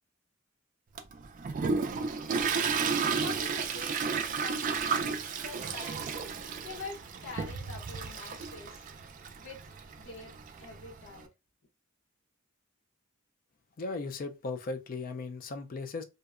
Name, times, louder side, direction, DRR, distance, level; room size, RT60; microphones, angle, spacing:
Toilet flush, 1.0-11.2, right 5 dB, 40° right, 0.3 m, -33 dB
voice 1, 3.2-6.0 6.6-8.8 9.4-9.6 10.0-10.3 10.6-11.3, left 3 dB, 65° left, 0.8 m, -45 dB
voice 2, 13.8-16.0, left 3 dB, 40° left, 0.3 m, -37 dB
2.7 x 2.1 x 2.4 m
head